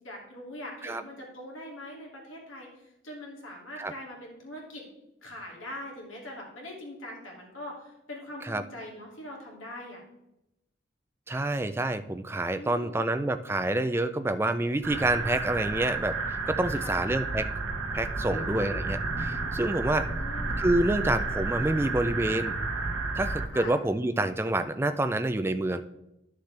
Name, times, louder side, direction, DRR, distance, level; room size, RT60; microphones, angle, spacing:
voice 1, 0.0-4.8 5.2-10.0 12.5-13.0 16.7-17.0 18.3-18.9 20.0-20.6 23.5-23.7, left 1 dB, 85° left, -1 dB, 2.5 m, -42 dB
voice 2, 11.3-17.5 17.9-20.1 20.6-22.6 23.2-25.8, right 2 dB, 10° right, 10 dB, 0.3 m, -28 dB
sound 1, 14.8-23.5, right 3 dB, 90° right, 0.9 m, -31 dB
11.5 x 6.7 x 3.3 m, 0.88 s
head